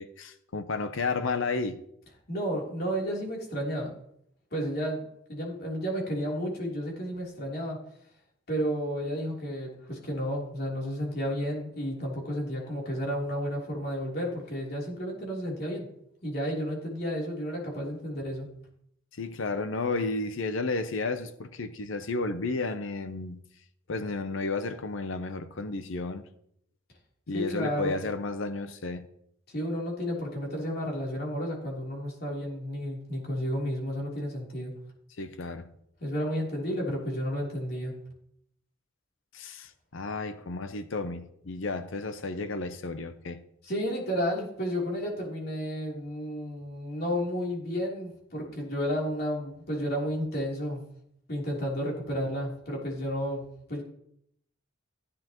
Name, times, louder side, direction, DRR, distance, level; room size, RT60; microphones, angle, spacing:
voice 1, 0.0-1.8 19.1-23.4 23.9-26.2 27.3-29.1 35.2-35.7 39.3-43.4, left 3 dB, 70° left, 0.7 m, -32 dB
voice 2, 2.3-3.9 4.5-7.8 8.5-15.9 16.2-18.5 27.3-27.9 29.5-34.7 36.0-38.0 43.6-50.9 51.3-53.8, equal, 50° left, 3.4 m, -32 dB
15.0 x 10.0 x 3.0 m
head